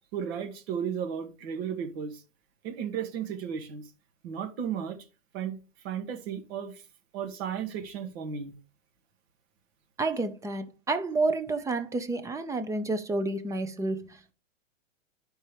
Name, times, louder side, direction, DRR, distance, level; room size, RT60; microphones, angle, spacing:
voice 1, 0.1-2.2 2.6-3.8 4.2-5.0 5.3-5.6 5.8-6.8 7.1-8.5, right 8 dB, 50° right, 1.7 m, -34 dB
voice 2, 10.0-14.3, right 2 dB, 10° right, 0.7 m, -30 dB
12.5 x 4.5 x 3.3 m
hypercardioid pair, 115°, 39 cm